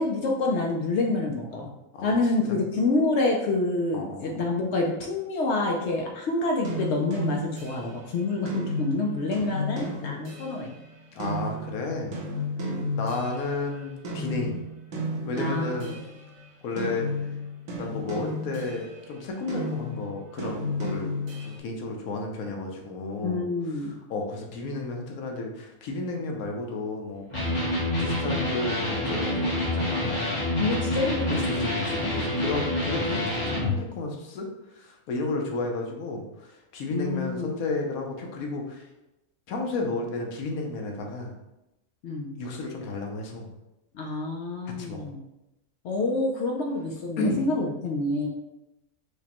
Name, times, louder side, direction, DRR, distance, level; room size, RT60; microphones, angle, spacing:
voice 1, 0.0-1.7 2.0-10.7 12.6-12.8 15.3-16.0 23.2-24.0 30.6-31.3 36.9-37.6 42.0-42.3 43.9-45.2 45.8-48.3, left 2 dB, 65° left, 0 dB, 0.7 m, -27 dB
voice 2, 3.9-4.4 11.1-12.1 13.0-14.6 15.2-15.9 16.6-17.1 17.8-21.1 21.4-23.5 23.8-27.5 28.0-30.4 31.3-38.9 39.5-41.3 42.4-43.5 44.7-45.1 47.2-47.4, left 2 dB, 80° left, 1 dB, 1.1 m, -32 dB
sound 1, 6.6-13.8 14.0-16.4 16.8-19.0 19.5-21.6, left 1 dB, 70° right, 1.2 m, -33 dB
Electric guitar, 27.3-33.7, left 1 dB, 25° left, 0.8 m, -27 dB
4.8 x 2.2 x 2.9 m, 0.94 s
omnidirectional pair, 1.5 m